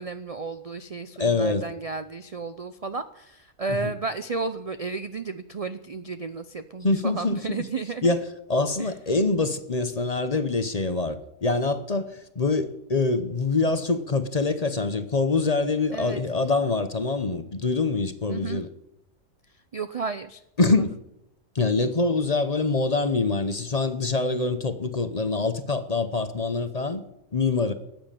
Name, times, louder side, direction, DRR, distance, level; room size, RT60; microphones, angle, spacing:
voice 1, 0.0-8.1 8.8-8.9 15.9-16.2 18.3-18.6 19.7-20.7, right 4 dB, 45° right, 0.4 m, -33 dB
voice 2, 1.2-1.7 6.8-7.4 8.0-8.2 8.5-18.7 20.6-21.0 21.5-27.0 27.3-27.7, left 3 dB, 35° left, 0.8 m, -25 dB
13.0 x 9.2 x 8.9 m
omnidirectional pair, 1.4 m